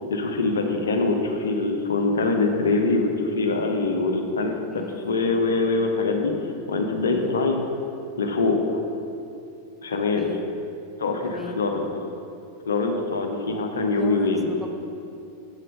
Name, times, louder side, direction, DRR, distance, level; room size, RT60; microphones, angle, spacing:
voice 1, 0.1-6.3 6.7-7.6 8.2-8.8 9.8-10.3 11.0-11.9 12.7-14.5, left 3 dB, 65° left, 3 dB, 0.8 m, -24 dB
voice 2, 4.7-5.1 7.1-7.4 10.2-10.4 11.2-11.6 13.9-14.8, left 3 dB, 5° left, 2 dB, 0.6 m, -37 dB
8.0 x 5.4 x 5.3 m, 2.6 s
figure-of-eight pair, 90°, 0 cm